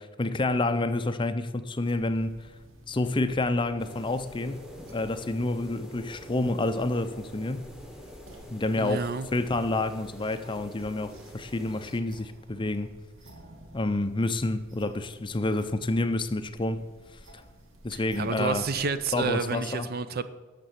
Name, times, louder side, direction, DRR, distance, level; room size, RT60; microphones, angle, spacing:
voice 1, 0.0-2.5 2.9-7.7 8.5-12.9 13.7-16.8 17.1-17.2 17.8-18.7 19.1-19.9, left 2 dB, 20° left, 0.5 m, -29 dB
sound 1, 1.8-19.5, right 1 dB, 60° right, 2.0 m, -52 dB
sound 2, 3.8-12.0, equal, 5° right, 1.1 m, -47 dB
voice 2, 8.8-9.3 17.9-20.2, right 5 dB, 45° right, 0.6 m, -30 dB
12.0 x 6.8 x 8.0 m
head